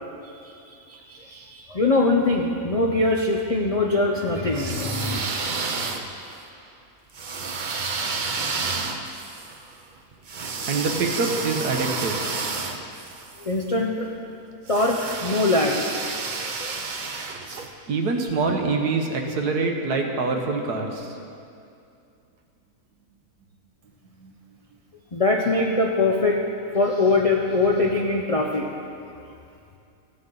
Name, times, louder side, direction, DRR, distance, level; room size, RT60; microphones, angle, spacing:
voice 1, 0.7-5.2 13.4-14.1 14.7-16.8 25.1-26.4 26.7-28.6 29.3-29.4, left 2 dB, 55° left, -1 dB, 0.4 m, -23 dB
sound 1, 4.5-6.4 7.1-13.5 14.7-17.7, right 4 dB, 50° right, 0.6 m, -30 dB
voice 2, 10.7-12.2 17.9-21.2 24.2-24.3, right 3 dB, 85° right, 3 dB, 1.6 m, -25 dB
14.5 x 9.3 x 3.9 m, 2.5 s
omnidirectional pair, 1.6 m